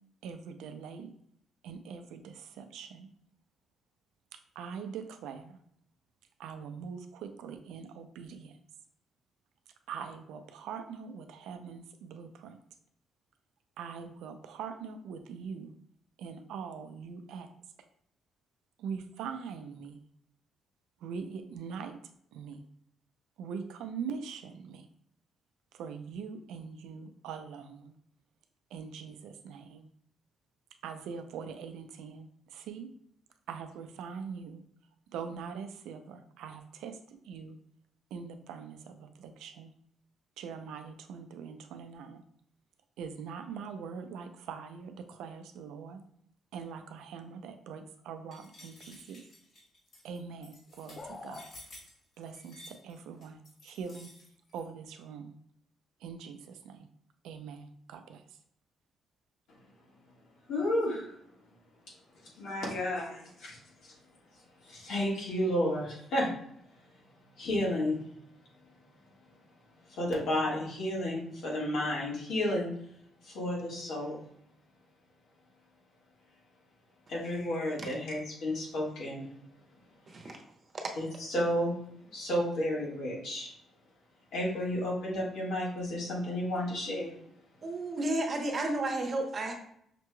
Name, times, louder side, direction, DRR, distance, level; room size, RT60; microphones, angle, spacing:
voice 1, 0.2-1.1 1.6-3.1 4.3-5.6 6.4-8.6 9.9-12.6 13.8-15.7 16.2-17.5 18.8-20.0 21.0-22.0 22.3-22.6 23.4-24.9 25.7-27.9 28.7-29.9 30.8-32.9 33.5-34.6 35.1-37.6 38.1-39.7 40.4-42.2 43.0-46.0 46.5-49.2 50.0-51.5 52.2-54.1 54.5-55.4 56.0-56.9 57.2-58.4, right 6 dB, 90° right, 7 dB, 0.4 m, -42 dB
sound 1, 48.3-54.6, left 1 dB, 60° left, 1.7 m, -53 dB
sound 2, 51.0-51.5, left 3 dB, 35° left, 0.4 m, -44 dB
voice 2, 60.5-61.2 62.2-63.9 64.6-66.3 67.4-68.2 69.9-72.7 73.2-74.2 77.1-79.3 80.2-80.3 81.0-81.8 82.1-83.5 84.3-87.2, left 1 dB, 80° left, -4 dB, 1.5 m, -32 dB
voice 3, 80.1-80.4 87.6-89.5, right 2 dB, 45° right, 2 dB, 0.9 m, -32 dB
5.8 x 3.0 x 2.2 m, 0.71 s
cardioid pair, 90°, 0 cm